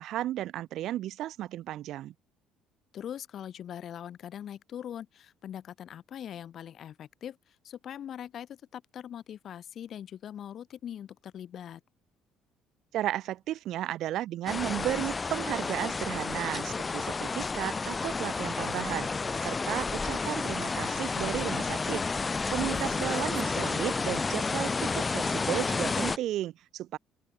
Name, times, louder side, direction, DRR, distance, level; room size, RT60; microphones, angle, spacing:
voice 1, 0.0-2.1 12.9-19.1 19.4-22.0 22.5-27.0, right 13 dB, 65° right, 1.4 m, -34 dB
voice 2, 2.9-11.8 22.7-23.7, left 10 dB, 50° left, 2.9 m, -42 dB
sound 1, 14.5-26.2, left 4 dB, 20° left, 0.8 m, -31 dB
open air
cardioid pair, 125°, 0 cm